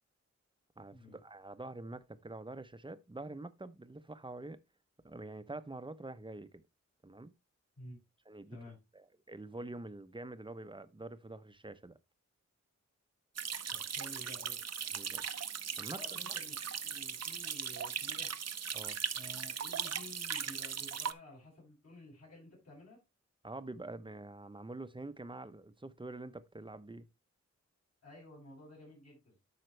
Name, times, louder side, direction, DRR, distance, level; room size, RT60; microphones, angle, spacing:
voice 1, 0.8-4.6 5.0-6.6 7.0-7.3 8.3-8.6 8.9-12.0 14.9-15.2 15.8-16.0 16.3-16.4 18.7-19.0 23.4-27.1, right 2 dB, 15° right, 0.7 m, -46 dB
sound 1, 13.4-21.1, right 7 dB, 60° right, 0.7 m, -38 dB
voice 2, 13.7-14.6 15.9-18.3 19.1-23.0 28.0-29.3, left 1 dB, 60° left, 6.6 m, -52 dB
12.0 x 5.7 x 3.2 m
wide cardioid pair, 120°, 29 cm